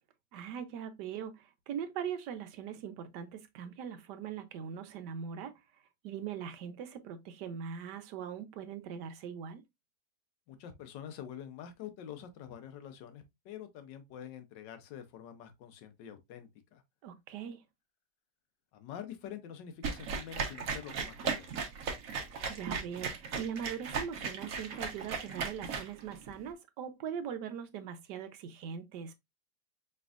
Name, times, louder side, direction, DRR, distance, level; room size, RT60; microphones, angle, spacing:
voice 1, 0.3-5.5 6.0-9.6 17.0-17.6 22.5-29.1, right 8 dB, 75° right, 1.3 m, -41 dB
voice 2, 10.5-16.8 18.7-21.5, left 9 dB, 90° left, 1.4 m, -46 dB
sound 1, 19.8-26.3, right 5 dB, 60° right, 1.2 m, -36 dB
5.1 x 3.2 x 2.4 m
omnidirectional pair, 1.9 m